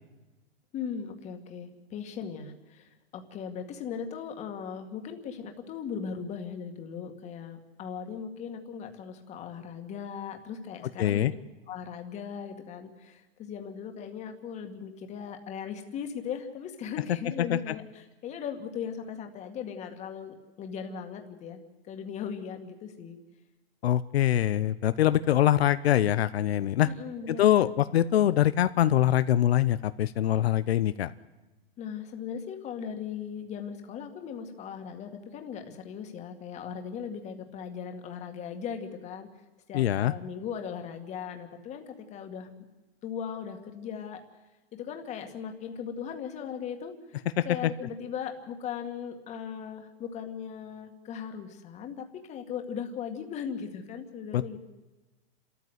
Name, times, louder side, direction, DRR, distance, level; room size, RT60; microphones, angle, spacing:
voice 1, 0.7-2.9 3.1-11.4 11.7-21.6 21.9-23.2 26.8-27.7 31.8-39.3 39.7-42.5 43.0-44.2 44.7-46.9 47.4-54.6, left 7 dB, 20° left, 5 dB, 2.1 m, -38 dB
voice 2, 11.0-11.3 17.5-17.7 23.8-26.9 27.3-31.1 39.7-40.1 47.4-47.7 54.3-54.6, left 12 dB, 80° left, 13 dB, 0.8 m, -24 dB
29.0 x 14.0 x 8.2 m, 1.2 s
supercardioid pair, 155°, 30 cm